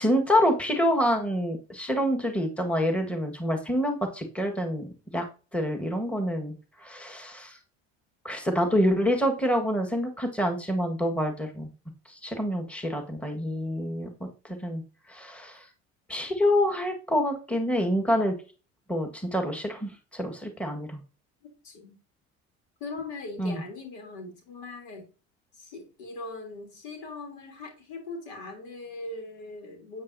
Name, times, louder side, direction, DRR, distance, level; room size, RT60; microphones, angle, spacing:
voice 1, 0.0-5.3 5.5-7.6 8.2-11.7 12.1-14.8 15.1-15.7 16.1-18.3 18.9-21.0 23.4-23.6, equal, 5° left, 3 dB, 1.7 m, -27 dB
voice 2, 21.4-22.0 22.8-25.1 25.5-30.0, left 3 dB, 80° left, 2 dB, 3.4 m, -40 dB
9.3 x 8.2 x 2.8 m, 0.34 s
supercardioid pair, 80°, 32 cm